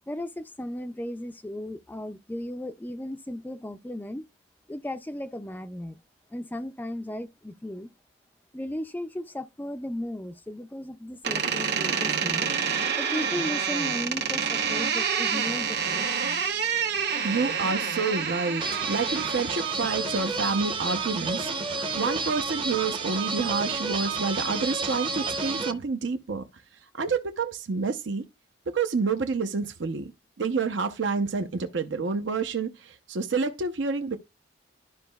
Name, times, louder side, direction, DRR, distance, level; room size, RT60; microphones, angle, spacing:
voice 1, 0.1-4.2 4.7-6.0 6.3-7.9 8.5-12.5 13.0-16.4, left 1 dB, 10° left, 0.3 m, -35 dB
Door, 11.2-19.7, right 6 dB, 60° right, 1.1 m, -28 dB
voice 2, 17.2-26.6 26.9-28.2 28.7-30.1 30.4-34.2, right 4 dB, 75° right, 0.7 m, -28 dB
sound 1, 18.6-25.7, right 4 dB, 25° right, 0.7 m, -30 dB
12.0 x 5.2 x 2.3 m
head